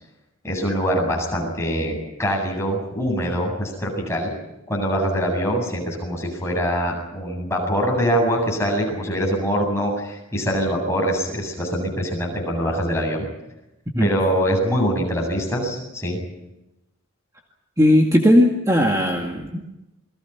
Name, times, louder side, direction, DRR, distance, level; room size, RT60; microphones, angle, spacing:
voice 1, 0.4-4.3 4.7-13.3 14.0-16.2, equal, 15° left, -1 dB, 7.9 m, -23 dB
voice 2, 17.8-19.6, equal, 15° right, 1 dB, 2.1 m, -17 dB
28.5 x 22.0 x 5.9 m, 0.94 s
head